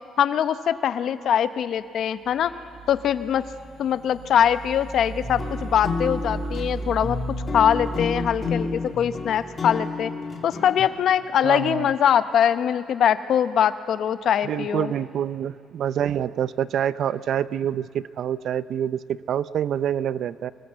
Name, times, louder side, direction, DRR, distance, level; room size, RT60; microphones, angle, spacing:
voice 1, 0.2-2.5 2.9-3.4 3.8-7.2 7.5-10.1 10.4-14.9, left 9 dB, 65° left, 12 dB, 0.8 m, -22 dB
Ground Loop, 2.2-9.8, right 3 dB, 50° right, 4.5 m, -36 dB
sound 1, 5.2-10.8, left 4 dB, 30° left, 2.4 m, -31 dB
voice 2, 11.4-11.9 14.4-20.5, right 9 dB, 65° right, 16 dB, 0.5 m, -26 dB
26.0 x 19.5 x 8.0 m, 2.4 s
cardioid pair, 110°, 0 cm